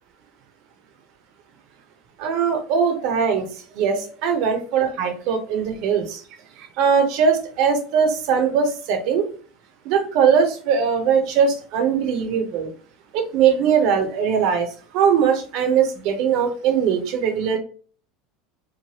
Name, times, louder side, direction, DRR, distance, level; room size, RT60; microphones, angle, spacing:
voice 1, 2.2-3.4 3.8-6.2 6.8-9.3 9.9-12.7 13.1-14.7 14.9-17.6, right 6 dB, 60° right, 6 dB, 0.7 m, -20 dB
3.2 x 2.1 x 2.8 m, 0.41 s
hypercardioid pair, 80°, 0 cm